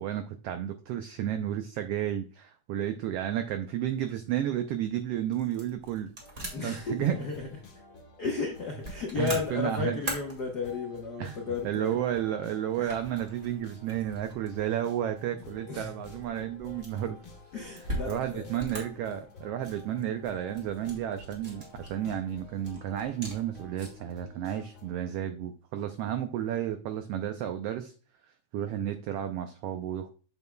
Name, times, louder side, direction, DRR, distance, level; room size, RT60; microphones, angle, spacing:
voice 1, 0.0-6.1 6.6-7.2 9.2-10.0 11.2-11.4 11.6-17.2 18.1-27.9 28.5-30.1, right 11 dB, 90° right, 1.3 m, -32 dB
sound 1, 4.6-24.1, right 1 dB, 30° right, 2.1 m, -44 dB
sound 2, 6.2-25.0, left 2 dB, 40° left, 1.6 m, -50 dB
voice 2, 6.5-7.5 8.2-12.0 12.8-12.9 15.7-15.9 17.5-18.5, left 4 dB, 75° left, 0.9 m, -34 dB
8.2 x 6.9 x 2.2 m
omnidirectional pair, 3.4 m